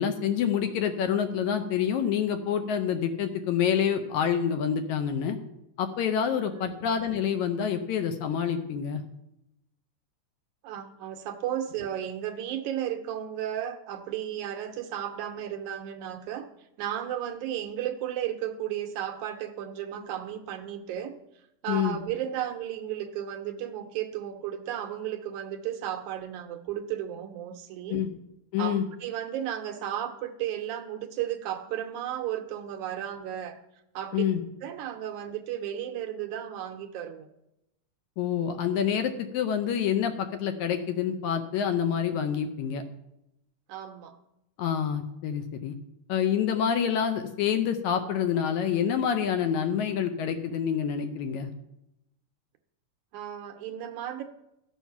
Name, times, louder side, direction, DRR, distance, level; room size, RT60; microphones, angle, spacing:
voice 1, 0.0-5.4 5.8-9.0 21.7-22.0 27.9-28.1 28.5-28.9 34.1-34.4 38.2-42.8 44.6-45.7 46.1-51.5, left 8 dB, 75° left, 7 dB, 1.9 m, -27 dB
voice 2, 6.5-6.8 10.6-16.5 16.8-21.2 21.6-28.0 28.6-33.6 34.0-34.2 34.6-37.3 43.7-44.2 53.1-54.2, right 10 dB, 75° right, 5 dB, 2.0 m, -34 dB
13.5 x 7.2 x 5.8 m, 0.87 s
omnidirectional pair, 3.8 m